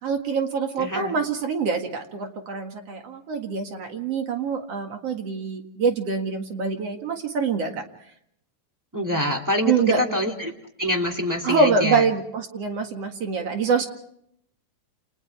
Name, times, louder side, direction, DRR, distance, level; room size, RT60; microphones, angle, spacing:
voice 1, 0.0-7.8 9.7-10.2 11.4-13.9, right 5 dB, 55° right, 4 dB, 2.8 m, -25 dB
voice 2, 0.8-1.1 8.9-12.0, left 1 dB, 5° right, 0 dB, 2.2 m, -26 dB
29.5 x 29.0 x 3.4 m, 0.70 s
omnidirectional pair, 3.5 m